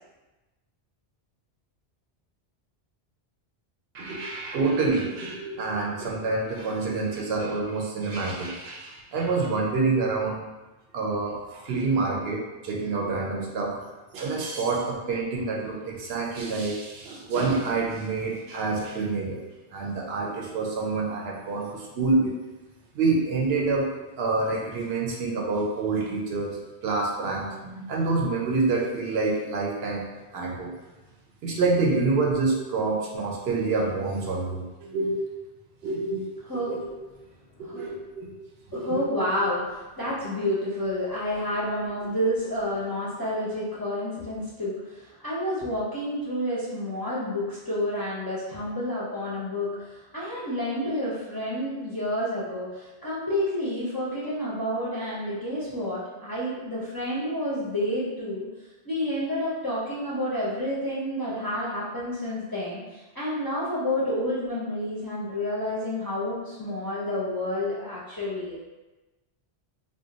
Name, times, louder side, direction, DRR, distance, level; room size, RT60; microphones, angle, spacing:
voice 1, 3.9-10.4 10.9-13.8 14.1-19.4 19.7-22.3 22.9-23.9 24.2-30.0 30.3-30.7 31.4-35.2 35.8-36.9 37.6-38.4 38.7-39.0 42.0-42.1, right 3 dB, 70° right, -1 dB, 0.8 m, -27 dB
voice 2, 36.5-36.8 37.6-37.8 38.7-58.5 58.8-68.6, left 1 dB, 30° left, -9 dB, 0.4 m, -29 dB
2.4 x 2.1 x 3.7 m, 1.1 s
omnidirectional pair, 1.1 m